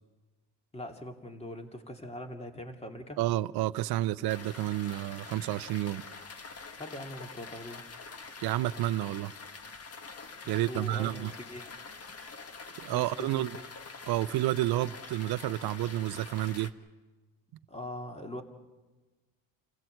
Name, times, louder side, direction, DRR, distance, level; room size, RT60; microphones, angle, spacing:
voice 1, 0.7-3.2 6.8-7.8 10.4-11.7 12.9-13.5 17.7-18.4, left 1 dB, 15° left, 2.5 m, -42 dB
voice 2, 3.2-6.0 8.4-9.3 10.5-11.3 12.8-13.6 14.1-16.7, right 15 dB, 65° right, 0.7 m, -30 dB
sound 1, 4.3-16.7, left 4 dB, 35° left, 1.7 m, -46 dB
28.5 x 15.5 x 7.8 m
cardioid pair, 100°, 41 cm